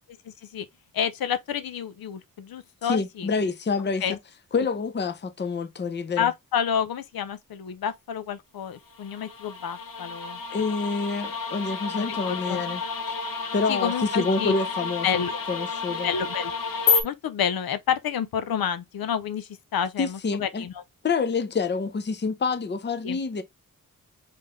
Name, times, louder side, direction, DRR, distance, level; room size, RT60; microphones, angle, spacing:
voice 1, 0.2-0.7 0.9-3.3 4.0-4.2 6.2-10.4 12.0-12.6 13.7-14.5 15.0-15.4 16.0-16.5 17.0-20.8 23.0-23.2, left 8 dB, 85° left, 0.6 m, -29 dB
voice 2, 2.9-4.2 4.5-6.3 10.5-12.8 13.5-15.2 15.5-16.1 20.0-20.7 21.0-23.4, left 4 dB, 30° left, 0.6 m, -27 dB
sound 1, 8.9-17.0, left 5 dB, 70° left, 1.1 m, -30 dB
3.8 x 3.7 x 3.3 m
wide cardioid pair, 155°, 35 cm